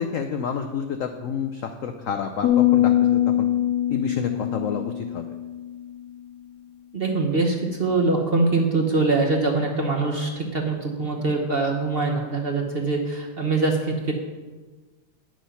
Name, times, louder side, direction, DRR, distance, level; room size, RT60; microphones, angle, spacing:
voice 1, 0.0-3.5 3.9-5.2, left 6 dB, 80° left, 6 dB, 0.7 m, -29 dB
sound 1, 2.4-5.8, left 12 dB, 60° left, 1.3 m, -22 dB
voice 2, 6.9-14.1, right 3 dB, 40° right, 1 dB, 0.9 m, -23 dB
9.7 x 6.2 x 5.6 m, 1.3 s
omnidirectional pair, 2.0 m